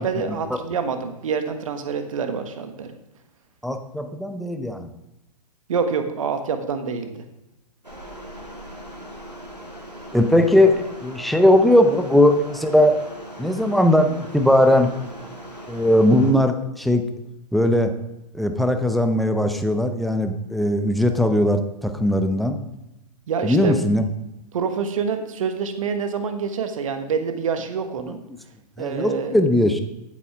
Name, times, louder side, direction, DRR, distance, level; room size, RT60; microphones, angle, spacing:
voice 1, 0.0-3.0 5.7-7.2 23.3-23.8 24.5-28.2 28.8-29.4, right 6 dB, 55° right, 7 dB, 1.4 m, -26 dB
voice 2, 3.6-4.9 10.1-13.0 13.4-14.9 15.7-17.0 17.5-17.9 18.3-22.6 23.4-24.0 28.1-28.2 28.8-29.8, left 1 dB, ahead, 6 dB, 0.6 m, -19 dB
sound 1, 7.8-16.3, right 1 dB, 90° right, 2.2 m, -39 dB
14.0 x 8.5 x 3.5 m, 0.91 s
figure-of-eight pair, 115°, 21 cm